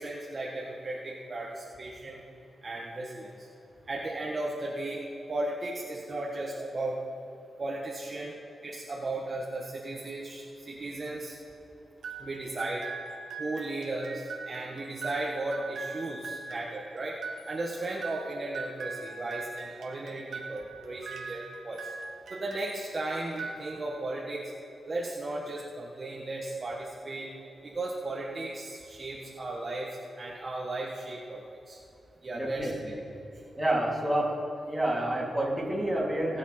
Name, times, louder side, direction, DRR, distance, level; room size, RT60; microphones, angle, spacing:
voice 1, 0.0-2.2 2.6-3.5 3.8-5.0 5.3-7.0 7.6-8.3 8.6-11.3 12.2-12.8 13.4-17.2 17.5-21.9 22.3-24.5 24.8-27.3 27.6-31.8 32.2-32.7, right 2 dB, 35° right, -4 dB, 1.4 m, -35 dB
sound 1, 12.0-22.9 23.3-24.1, right 4 dB, 85° right, 1.5 m, -41 dB
voice 2, 32.3-32.9 33.6-34.3 34.6-36.4, right 1 dB, 10° right, -5 dB, 3.1 m, -28 dB
20.0 x 7.4 x 4.3 m, 2.9 s
wide cardioid pair, 110°, 0 cm